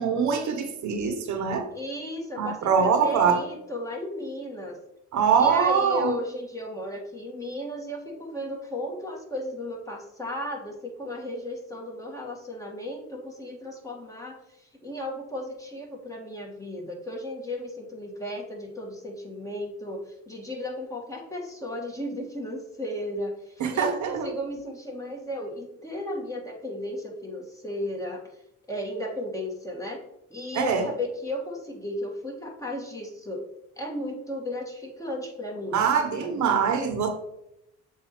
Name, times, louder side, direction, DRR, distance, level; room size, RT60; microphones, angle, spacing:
voice 1, 0.0-1.7 2.4-3.4 5.1-6.1 23.6-24.3 30.5-30.8 35.7-37.1, right 6 dB, 70° right, 5 dB, 1.0 m, -23 dB
voice 2, 1.7-4.8 5.4-28.3 28.7-30.0 30.3-33.4 33.8-35.8 36.2-36.4, left 1 dB, 10° left, -1 dB, 1.8 m, -35 dB
7.2 x 2.7 x 5.8 m, 0.82 s
cardioid pair, 90°, 30 cm